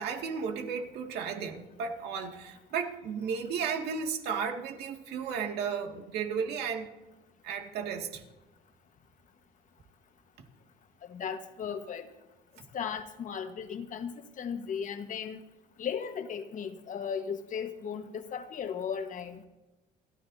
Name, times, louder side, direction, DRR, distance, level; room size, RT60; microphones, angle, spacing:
voice 1, 0.0-6.9 7.4-8.2, right 6 dB, 75° right, 2.2 m, -34 dB
voice 2, 11.1-12.1 12.7-15.4 15.8-19.5, left 7 dB, 50° left, 1.4 m, -36 dB
28.5 x 13.5 x 2.8 m
cardioid pair, 110°, 17 cm